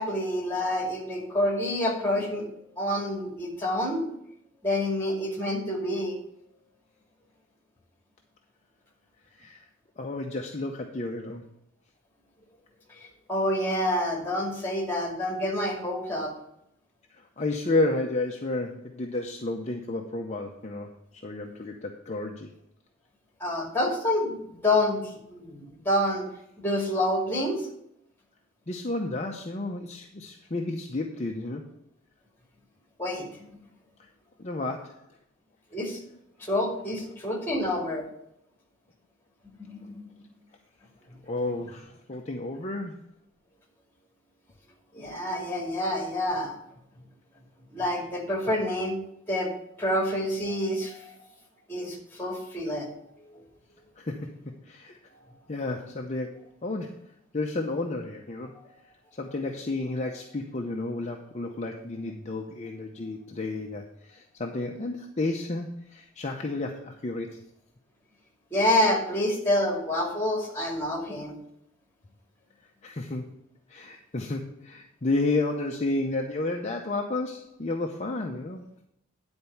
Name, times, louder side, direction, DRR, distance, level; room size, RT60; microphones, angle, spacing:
voice 1, 0.0-2.5 2.8-4.0 4.6-6.2 12.9-16.3 23.4-26.3 26.6-27.6 33.0-33.6 35.7-36.0 36.4-38.0 39.6-40.2 44.9-46.6 47.7-49.0 49.3-49.5 49.8-51.1 51.7-52.9 53.2-53.4 58.5-58.6 68.5-71.3, left 1 dB, 10° left, 0 dB, 2.3 m, -28 dB
voice 2, 9.3-9.6 10.0-11.4 17.1-22.5 28.7-31.7 34.4-35.0 41.2-43.0 54.0-54.4 54.6-55.0 55.5-57.0 57.3-58.5 59.1-67.4 72.8-73.2 73.7-78.6, left 2 dB, 35° left, 1 dB, 0.7 m, -31 dB
10.0 x 4.4 x 7.0 m, 0.77 s
head